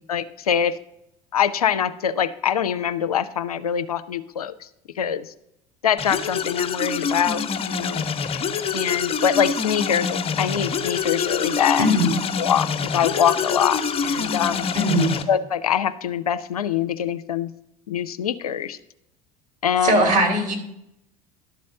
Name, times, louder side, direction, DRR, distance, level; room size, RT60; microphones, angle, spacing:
voice 1, 0.1-0.8 1.3-4.5 5.0-5.3 5.8-7.4 7.7-8.0 8.3-8.4 8.7-11.9 12.4-14.7 15.3-17.5 17.9-18.8 19.6-20.1, left 8 dB, 80° left, 11 dB, 0.5 m, -24 dB
sound 1, 6.0-15.2, left 6 dB, 30° left, 0.9 m, -26 dB
voice 2, 11.8-12.1 14.7-15.1 19.8-20.5, equal, 40° right, 3 dB, 2.6 m, -19 dB
11.5 x 4.2 x 6.7 m, 0.81 s
figure-of-eight pair, 70°, 19 cm